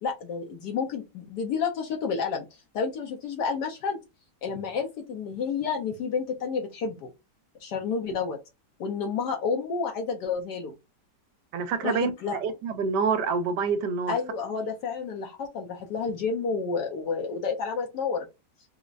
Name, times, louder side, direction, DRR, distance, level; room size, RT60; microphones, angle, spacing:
voice 1, 0.0-4.0 4.4-7.1 7.6-8.4 8.8-10.7 11.8-12.4 14.1-18.3, left 5 dB, 75° left, 1.3 m, -30 dB
voice 2, 11.5-14.1, right 5 dB, 80° right, 1.2 m, -27 dB
4.9 x 2.1 x 2.4 m
omnidirectional pair, 1.9 m